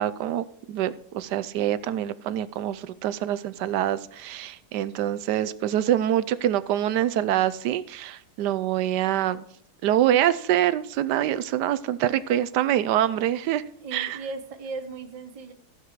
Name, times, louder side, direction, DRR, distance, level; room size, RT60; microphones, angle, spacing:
voice 1, 0.0-9.4 9.8-13.6 13.9-14.2, right 12 dB, 85° right, 16 dB, 1.2 m, -25 dB
voice 2, 13.8-15.5, right 4 dB, 30° right, 8 dB, 0.8 m, -36 dB
14.5 x 7.5 x 4.7 m, 0.63 s
omnidirectional pair, 1.8 m